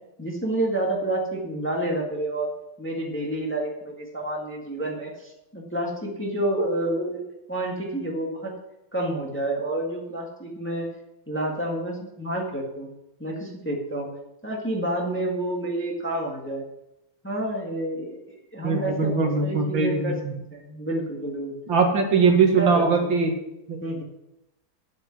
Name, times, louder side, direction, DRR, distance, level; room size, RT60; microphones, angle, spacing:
voice 1, 0.2-2.5 2.8-7.2 7.5-8.5 8.9-10.9 11.3-12.9 13.2-14.1 14.4-16.6 17.2-20.2 20.5-21.5 22.6-23.2 23.8-24.0, right 1 dB, 5° left, -1 dB, 1.6 m, -29 dB
voice 2, 18.6-20.3 21.7-23.3 23.7-23.8, right 4 dB, 65° right, 2 dB, 2.3 m, -21 dB
10.0 x 8.0 x 6.1 m, 0.90 s
omnidirectional pair, 2.3 m